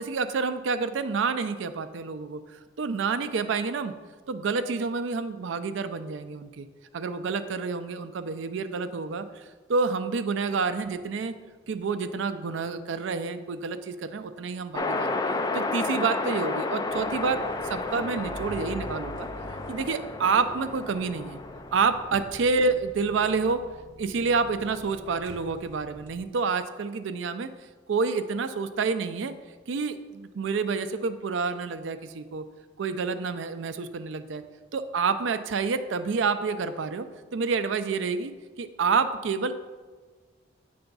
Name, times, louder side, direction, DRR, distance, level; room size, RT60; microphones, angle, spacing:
voice 1, 0.0-2.4 2.8-3.9 4.3-6.7 6.9-9.4 9.7-11.3 11.7-15.2 15.5-17.4 17.6-19.3 19.7-21.4 21.7-23.6 24.0-27.5 27.9-29.3 29.7-32.4 32.8-34.4 34.7-37.1 37.3-38.3 38.6-39.5, right 4 dB, 65° right, 11 dB, 0.4 m, -28 dB
sound 1, 14.7-22.1, left 3 dB, 20° left, 0.3 m, -32 dB
sound 2, 16.9-26.3, right 1 dB, 45° right, 0.9 m, -46 dB
7.9 x 3.4 x 5.4 m, 1.4 s
head